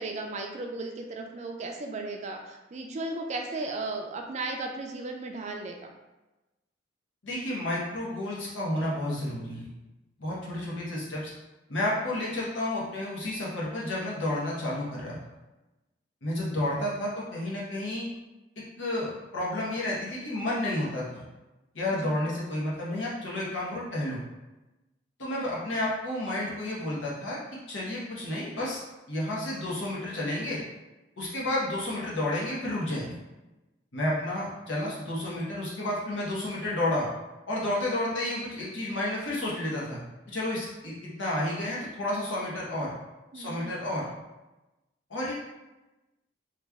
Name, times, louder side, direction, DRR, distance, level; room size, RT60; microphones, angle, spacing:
voice 1, 0.0-5.9 22.0-22.2 43.3-43.7, right 2 dB, 35° right, 3 dB, 0.4 m, -35 dB
voice 2, 7.2-9.7 10.2-11.3 11.7-15.2 16.2-18.1 18.8-21.2 21.7-24.2 25.2-28.8 29.1-30.6 31.2-33.1 33.9-37.1 37.5-40.0 40.3-42.9 43.3-44.1 45.1-45.3, left 1 dB, 80° left, -5 dB, 1.1 m, -31 dB
3.0 x 2.5 x 3.4 m, 1.0 s
head